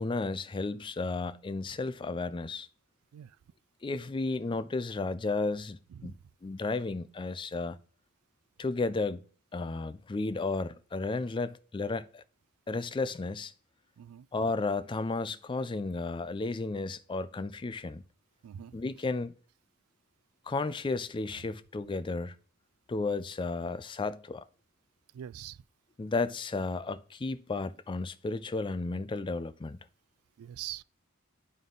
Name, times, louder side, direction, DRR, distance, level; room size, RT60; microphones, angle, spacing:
voice 1, 0.0-2.7 3.8-6.1 6.4-7.8 8.6-9.2 9.5-12.2 12.7-13.5 14.3-18.0 18.7-19.3 20.5-22.4 22.9-24.4 26.0-29.8, left 3 dB, 20° left, 0.3 m, -33 dB
voice 2, 14.0-14.3 18.4-18.8 25.1-25.6 30.4-30.8, right 11 dB, 85° right, 0.3 m, -43 dB
11.0 x 3.7 x 3.8 m
head